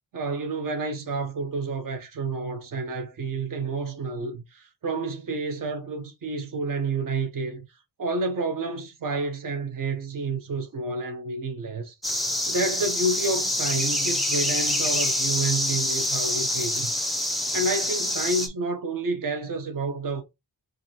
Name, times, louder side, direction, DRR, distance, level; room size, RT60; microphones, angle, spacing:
voice 1, 0.1-7.7 8.0-11.9 12.5-16.9 17.5-20.2, right 3 dB, 50° right, 0.9 m, -29 dB
sound 1, 12.0-18.5, left 1 dB, ahead, 0.5 m, -26 dB
4.7 x 2.6 x 2.8 m
wide cardioid pair, 150°, 42 cm